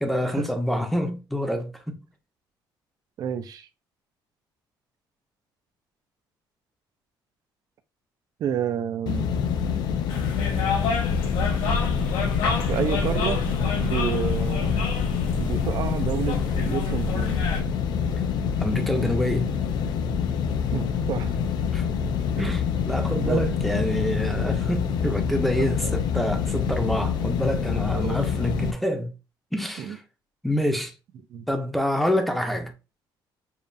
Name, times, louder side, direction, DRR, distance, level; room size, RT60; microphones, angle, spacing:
voice 1, 0.0-2.0 18.6-19.5 21.7-21.9 22.4-29.1 29.5-30.0 30.4-30.9 31.5-32.7, equal, ahead, 0.7 m, -27 dB
voice 2, 3.2-3.7 8.4-9.3 12.7-13.4 13.8-14.7 15.4-17.4 20.7-21.4 22.4-22.6 23.2-23.5 25.6-26.0 27.9-28.3 29.8-30.0 31.3-31.5, right 8 dB, 50° right, 0.6 m, -30 dB
sound 1, 9.1-28.7, left 7 dB, 55° left, 0.4 m, -26 dB
sound 2, 10.1-17.6, left 3 dB, 90° left, 1.2 m, -29 dB
7.1 x 2.4 x 2.7 m
cardioid pair, 165°, 8 cm